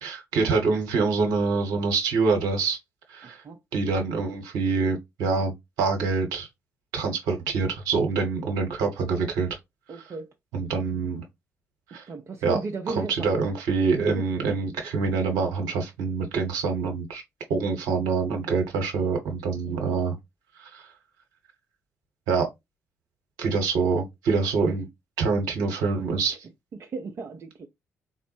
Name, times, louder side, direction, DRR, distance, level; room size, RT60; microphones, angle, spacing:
voice 1, 0.0-2.8 3.1-3.4 3.7-6.5 6.9-9.5 10.5-11.2 11.9-12.0 12.4-12.6 12.9-17.2 17.5-20.1 20.6-20.9 22.3-22.5 23.4-24.9 25.2-26.4, right 4 dB, 65° right, 1.0 m, -25 dB
voice 2, 3.2-3.6 9.9-10.3 12.1-13.5 14.2-14.3 19.6-20.0 26.7-27.7, right 3 dB, 40° right, 0.5 m, -35 dB
4.0 x 2.0 x 2.9 m
figure-of-eight pair, 40°, 7 cm